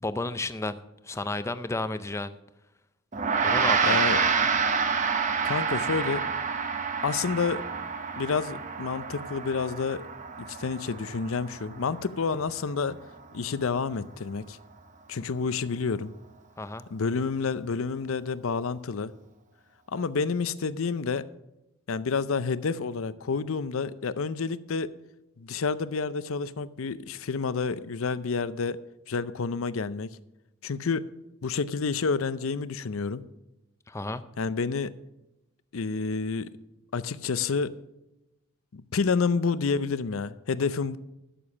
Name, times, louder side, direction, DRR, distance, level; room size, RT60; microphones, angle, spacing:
voice 1, 0.0-0.8 1.0-2.3 3.4-4.0 16.6-16.8 33.9-34.2, left 2 dB, 15° left, 12 dB, 0.4 m, -32 dB
Gong, 3.1-12.7, right 5 dB, 35° right, 0.9 m, -28 dB
voice 2, 3.8-4.2 5.4-6.2 7.0-7.6 8.2-10.0 10.4-13.0 13.3-14.6 15.1-16.1 16.9-19.1 19.9-21.2 21.9-24.9 25.4-28.8 29.1-30.2 30.6-31.1 31.4-33.2 34.4-34.9 35.7-36.5 36.9-37.7 38.7-41.0, left 5 dB, 70° left, 15 dB, 0.5 m, -29 dB
12.5 x 6.9 x 6.0 m, 0.93 s
head